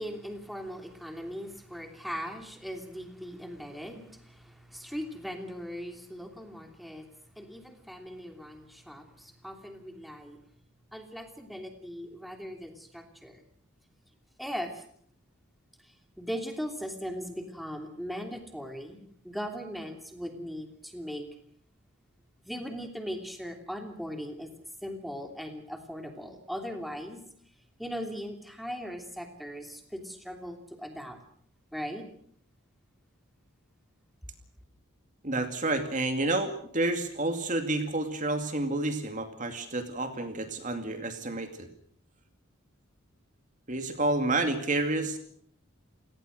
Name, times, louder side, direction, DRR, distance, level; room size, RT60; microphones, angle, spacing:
voice 1, 0.0-10.4 10.9-13.4 14.4-14.8 15.8-21.3 22.4-24.5 24.8-27.2 27.8-31.2 31.7-32.1, equal, ahead, 4 dB, 3.0 m, -39 dB
voice 2, 35.2-41.7 43.7-45.2, right 2 dB, 40° right, 7 dB, 2.4 m, -29 dB
29.5 x 18.5 x 6.5 m, 0.63 s
head